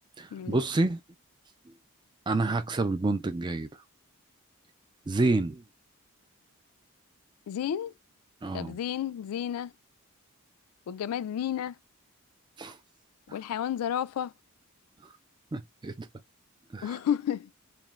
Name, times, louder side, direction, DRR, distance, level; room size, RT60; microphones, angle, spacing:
voice 1, 0.2-1.0 1.7-1.8 2.3-3.7 5.1-5.6 8.4-8.8 12.6-12.8 13.3-13.4 15.5-16.1 16.7-17.0, right 2 dB, 20° right, 0.3 m, -28 dB
voice 2, 7.5-7.9 8.5-9.7 10.9-11.8 13.3-14.3 16.8-17.5, left 9 dB, 80° left, 0.3 m, -31 dB
2.4 x 2.1 x 3.0 m
head